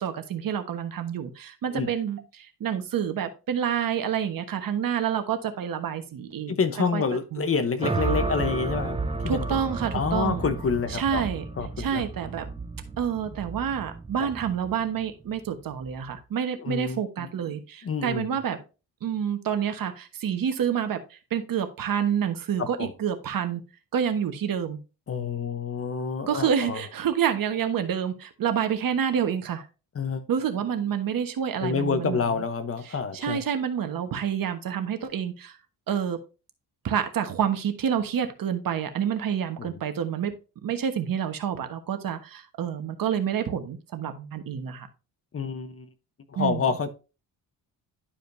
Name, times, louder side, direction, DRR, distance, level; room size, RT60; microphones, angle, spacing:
voice 1, 0.0-6.6 6.9-7.0 7.3-7.4 9.3-10.5 10.9-11.4 11.8-12.5 13.0-18.6 19.0-23.6 23.9-24.8 26.3-29.7 30.3-32.2 32.9-35.6 35.9-36.2 36.8-40.3 40.6-44.9 46.4-46.6, right 8 dB, 60° right, 1.3 m, -28 dB
voice 2, 6.5-9.4 9.9-11.2 11.6-12.1 14.2-14.3 16.6-17.3 17.8-18.4 22.6-22.9 25.1-26.8 29.9-30.2 31.6-33.4 39.6-39.8 45.3-45.9 46.3-46.9, left 5 dB, 35° left, 0.9 m, -28 dB
sound 1, 7.8-16.1, right 3 dB, 15° right, 0.7 m, -32 dB
11.5 x 5.1 x 2.6 m
cardioid pair, 130°, 38 cm